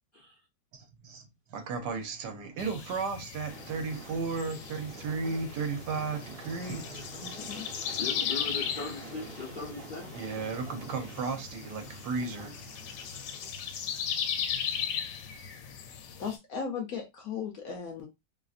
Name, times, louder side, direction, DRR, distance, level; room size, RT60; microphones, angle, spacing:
voice 1, 0.7-1.2 1.5-7.0 10.1-12.7, right 4 dB, 70° right, 1.3 m, -34 dB
sound 1, 2.6-16.4, left 8 dB, 80° left, 1.2 m, -37 dB
Train, 3.5-13.5, right 4 dB, 45° right, 0.8 m, -48 dB
voice 2, 7.1-7.7 16.2-18.1, left 6 dB, 65° left, 1.0 m, -37 dB
voice 3, 8.0-10.2, left 4 dB, 45° left, 0.6 m, -39 dB
3.1 x 2.5 x 2.4 m
omnidirectional pair, 1.9 m